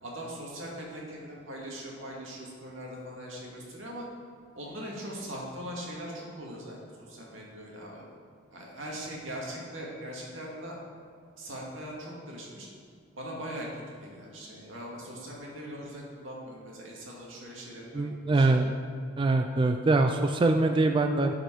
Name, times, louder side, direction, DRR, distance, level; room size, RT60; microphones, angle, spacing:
voice 1, 0.0-4.1 4.5-6.8 7.1-8.0 8.5-10.8 11.4-12.7 13.2-18.1 18.3-18.5, equal, 85° right, -3 dB, 2.1 m, -40 dB
voice 2, 17.9-18.7 19.2-21.3, right 2 dB, 25° right, 5 dB, 0.3 m, -24 dB
11.0 x 5.0 x 4.6 m, 2.2 s
head